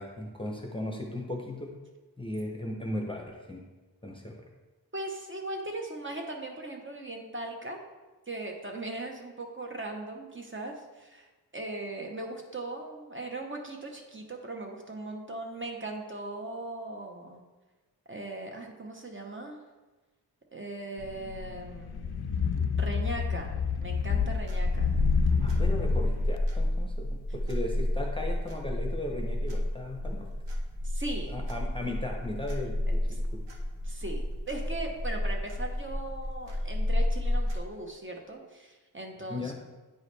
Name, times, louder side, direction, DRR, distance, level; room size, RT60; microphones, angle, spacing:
voice 1, 0.0-1.7 2.2-3.6 4.0-4.4 25.4-30.3 31.3-33.4 39.3-39.5, left 1 dB, 15° left, 0 dB, 0.8 m, -37 dB
voice 2, 4.9-7.8 8.3-17.4 18.1-19.6 20.5-22.3 22.7-24.9 30.8-31.5 33.1-33.2 33.8-39.5, right 2 dB, 30° right, 1 dB, 0.9 m, -39 dB
sound 1, 21.0-26.4, left 6 dB, 65° left, 0.5 m, -30 dB
sound 2, 24.0-37.6, left 1 dB, 85° right, 1.2 m, -30 dB
9.3 x 4.8 x 3.3 m, 1.2 s
wide cardioid pair, 120°, 41 cm